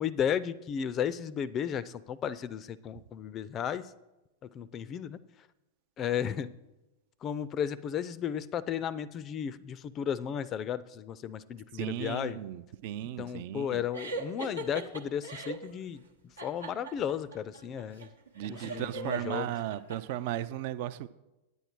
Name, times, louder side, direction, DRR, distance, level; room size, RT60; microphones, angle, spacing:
voice 1, 0.0-3.8 4.5-5.2 6.0-6.5 7.2-12.4 13.2-16.0 16.4-18.1 18.5-19.5, left 8 dB, 30° left, 18 dB, 0.4 m, -34 dB
voice 2, 11.7-13.8 18.4-21.1, right 12 dB, 50° right, 15 dB, 0.4 m, -36 dB
sound 1, 13.9-15.7 16.4-20.0, right 3 dB, 80° right, 0.9 m, -40 dB
9.3 x 8.9 x 4.5 m, 1.0 s
figure-of-eight pair, 90°, 0 cm